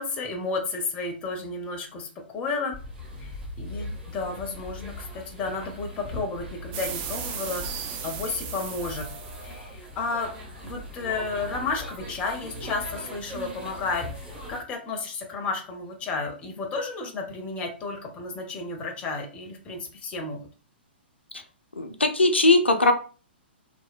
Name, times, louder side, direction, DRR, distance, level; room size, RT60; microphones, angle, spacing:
voice 1, 0.0-2.7 3.2-9.1 9.4-10.3 10.6-20.4, left 3 dB, 20° left, 3 dB, 0.6 m, -32 dB
sound 1, 2.7-14.6, left 1 dB, 10° right, 0.8 m, -39 dB
sound 2, 6.7-9.6, right 8 dB, 30° right, 0.3 m, -36 dB
voice 2, 21.8-22.9, left 2 dB, 85° left, 6 dB, 0.4 m, -20 dB
2.7 x 2.0 x 2.5 m, 0.37 s
figure-of-eight pair, 115°, 6 cm